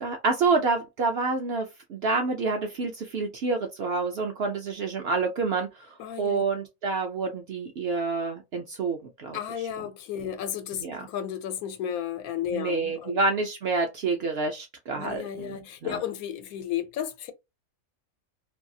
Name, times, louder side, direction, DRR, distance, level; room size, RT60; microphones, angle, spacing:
voice 1, 0.0-9.4 10.8-11.1 12.5-16.0, right 4 dB, 65° right, 0.6 m, -28 dB
voice 2, 6.0-6.4 9.3-13.2 15.0-17.3, left 10 dB, 85° left, 1.1 m, -33 dB
2.6 x 2.3 x 2.6 m
omnidirectional pair, 1.5 m